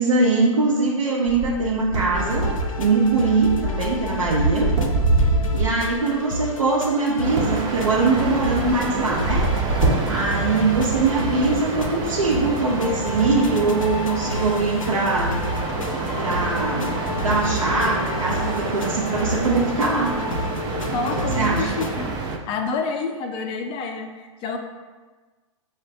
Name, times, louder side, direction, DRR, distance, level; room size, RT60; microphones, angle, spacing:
voice 1, 0.0-2.5 2.8-4.7 5.5-9.5 10.1-15.5 16.2-20.2 21.3-21.7, right 3 dB, 85° right, -4 dB, 0.6 m, -22 dB
sound 1, 1.3-6.1 7.2-10.7 10.9-11.3 11.8-11.9, right 2 dB, 60° right, 0.9 m, -25 dB
sound 2, 2.1-21.9, left 1 dB, 85° left, 0.5 m, -31 dB
sound 3, 7.2-22.4, right 4 dB, 25° right, 0.4 m, -29 dB
voice 2, 20.9-22.2 22.5-24.6, left 4 dB, 30° left, 4 dB, 0.5 m, -28 dB
6.3 x 2.1 x 2.5 m, 1.3 s
hypercardioid pair, 105°, 17 cm